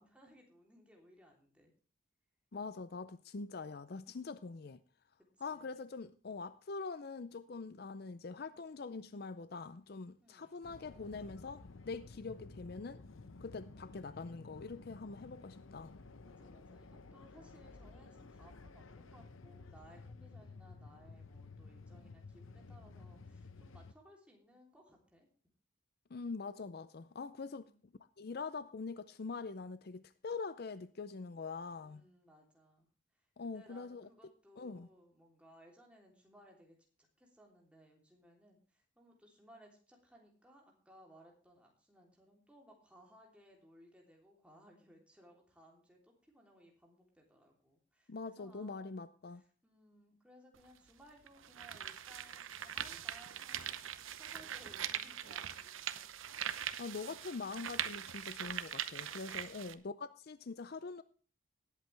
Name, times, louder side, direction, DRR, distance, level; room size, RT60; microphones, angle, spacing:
voice 1, 0.0-1.7 3.4-3.7 5.2-5.8 10.2-10.6 16.2-25.3 27.4-27.8 31.8-32.9 33.1-49.0 49.3-56.0, equal, 5° right, 3.2 m, -62 dB
voice 2, 2.5-4.8 5.4-13.0 13.4-15.9 26.1-27.7 28.2-32.0 33.4-34.1 34.6-34.9 48.1-49.4 56.8-61.0, left 4 dB, 50° left, 0.5 m, -44 dB
sound 1, 10.6-23.9, left 3 dB, 85° left, 0.8 m, -53 dB
sound 2, 50.5-50.6 51.3-59.7, right 9 dB, 80° right, 0.8 m, -42 dB
18.5 x 8.4 x 3.4 m
head